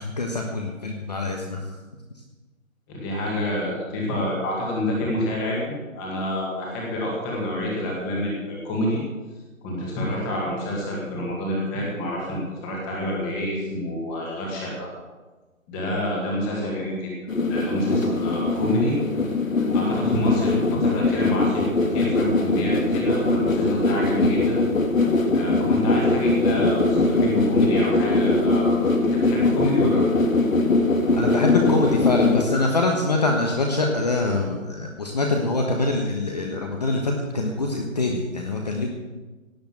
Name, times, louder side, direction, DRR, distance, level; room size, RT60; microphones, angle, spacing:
voice 1, 0.0-1.6 31.1-38.9, left 2 dB, 30° left, 1 dB, 1.3 m, -24 dB
voice 2, 2.9-9.0 9.6-14.9 15.7-17.1 17.5-18.9 19.7-24.6 25.3-30.1, left 1 dB, 10° left, -2 dB, 1.8 m, -27 dB
sound 1, 17.3-32.4, left 2 dB, 70° left, 2.0 m, -21 dB
17.0 x 6.9 x 7.8 m, 1.2 s
figure-of-eight pair, 160°, 41 cm